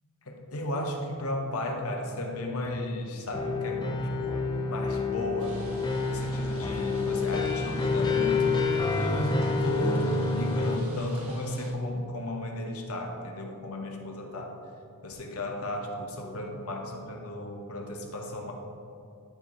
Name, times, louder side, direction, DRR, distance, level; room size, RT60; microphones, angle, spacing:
voice 1, 0.2-3.9 4.2-5.6 6.1-8.6 9.0-14.6 15.0-18.5, left 1 dB, 70° left, 2 dB, 1.1 m, -34 dB
sound 1, 3.3-10.8, left 4 dB, 20° left, 0.5 m, -28 dB
sound 2, 5.4-11.7, right 1 dB, 70° right, 1.4 m, -45 dB
11.5 x 4.6 x 4.2 m, 2.6 s
head